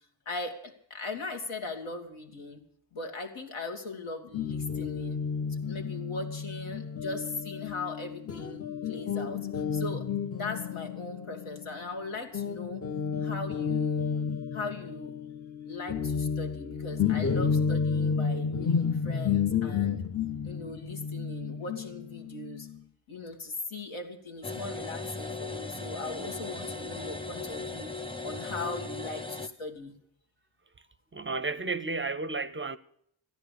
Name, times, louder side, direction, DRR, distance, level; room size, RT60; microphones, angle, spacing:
voice 1, 0.3-2.6 2.9-5.2 5.5-10.1 10.3-12.8 13.2-14.1 14.5-15.2 15.6-20.0 20.4-22.7 23.1-27.9 28.2-30.0, left 3 dB, 80° left, 2.3 m, -39 dB
Guitar, 4.3-12.0 12.3-22.8, left 6 dB, 30° left, 0.6 m, -31 dB
sound 1, 24.4-29.5, left 3 dB, 10° left, 0.9 m, -38 dB
voice 2, 31.1-32.8, right 3 dB, 25° right, 0.5 m, -32 dB
14.0 x 10.5 x 8.3 m
cardioid pair, 85°, 47 cm